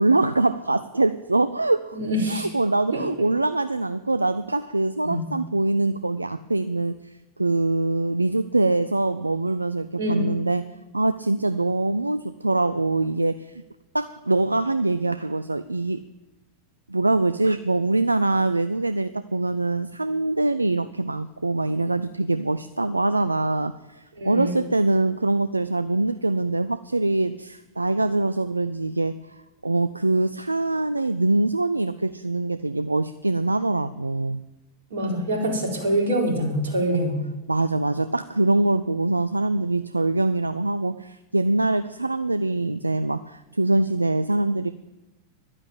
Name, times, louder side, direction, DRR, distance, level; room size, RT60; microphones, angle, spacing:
voice 1, 0.0-2.0 2.3-7.1 7.4-10.7 10.9-13.5 13.9-16.0 16.9-29.2 29.6-34.4 36.9-37.0 37.5-44.7, right 2 dB, 85° right, 13 dB, 0.4 m, -23 dB
voice 2, 1.9-2.5 2.9-3.0 5.0-5.3 10.0-10.3 24.2-24.5 34.9-37.2, equal, 60° right, 0 dB, 4.2 m, -25 dB
11.5 x 9.8 x 8.7 m, 1.0 s
figure-of-eight pair, 90°, 0 cm